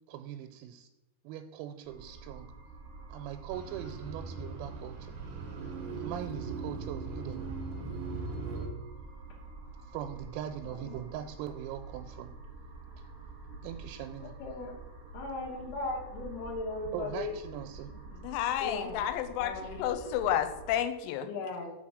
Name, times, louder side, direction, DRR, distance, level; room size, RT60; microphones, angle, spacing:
voice 1, 0.1-0.9 1.2-2.5 3.1-5.2 6.0-7.4 9.8-12.3 13.0-13.1 13.6-14.3 16.9-17.9, right 10 dB, 90° right, 3.3 m, -41 dB
sound 1, 1.8-20.7, right 3 dB, 35° right, 2.1 m, -48 dB
sound 2, 3.5-8.7, right 4 dB, 70° right, 1.9 m, -39 dB
voice 2, 10.6-11.2 14.2-14.7 15.1-17.4 18.6-19.0 19.4-20.0 21.2-21.7, left 3 dB, 65° left, 2.8 m, -38 dB
voice 3, 18.2-21.3, left 10 dB, 90° left, 3.3 m, -31 dB
6.0 x 5.8 x 6.2 m
omnidirectional pair, 6.0 m